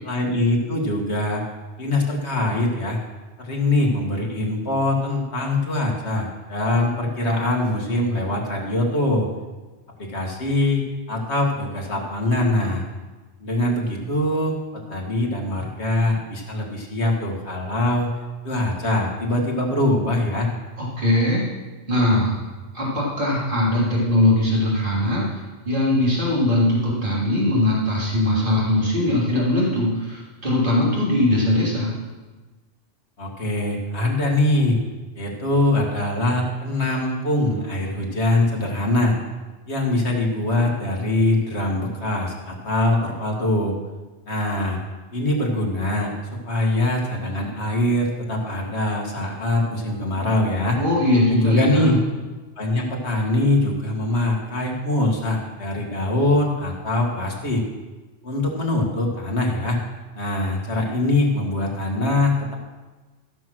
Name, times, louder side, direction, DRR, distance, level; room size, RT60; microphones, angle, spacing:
voice 1, 0.0-1.4 1.8-3.0 3.4-9.3 10.0-10.8 11.1-12.8 13.4-14.6 14.9-18.1 18.4-20.5 33.2-34.8 35.1-39.2 39.7-43.8 44.3-44.8 45.1-46.1 46.5-50.8 51.3-52.0 52.6-57.6 58.2-59.8 60.1-62.5, left 2 dB, 70° left, -1 dB, 2.2 m, -23 dB
voice 2, 20.8-21.4 21.9-22.4 22.7-25.2 25.6-31.9 50.7-51.9, left 1 dB, 45° right, -6 dB, 3.3 m, -20 dB
15.0 x 6.2 x 6.1 m, 1.2 s
omnidirectional pair, 1.2 m